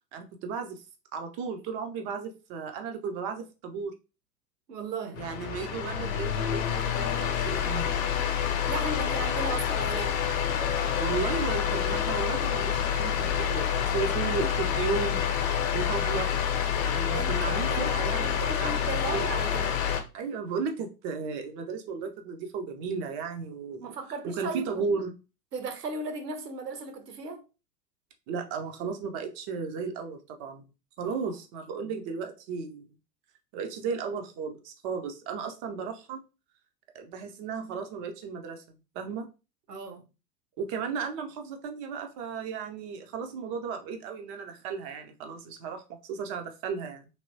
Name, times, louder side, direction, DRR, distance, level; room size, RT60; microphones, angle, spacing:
voice 1, 0.1-0.8 1.1-3.9 5.2-7.9 11.0-15.2 15.7-16.3 16.8-19.3 20.1-23.9 24.3-25.2 28.3-30.6 31.0-32.9 33.5-36.2 36.9-39.3 40.6-47.1, right 5 dB, 25° right, 0.3 m, -34 dB
voice 2, 4.7-5.2 8.7-10.2 17.1-19.8 23.8-24.7 25.5-27.4 31.0-31.1 39.7-40.1, right 4 dB, 80° right, 0.8 m, -36 dB
sound 1, 5.1-20.0, left 8 dB, 55° left, 0.8 m, -28 dB
Bark, 9.2-11.3 11.9-12.7 13.0-13.2 13.6-13.9 15.4-15.6 16.2-16.3 16.6-17.0, left 3 dB, 20° left, 0.6 m, -45 dB
3.2 x 2.8 x 2.6 m
figure-of-eight pair, 85°, 48 cm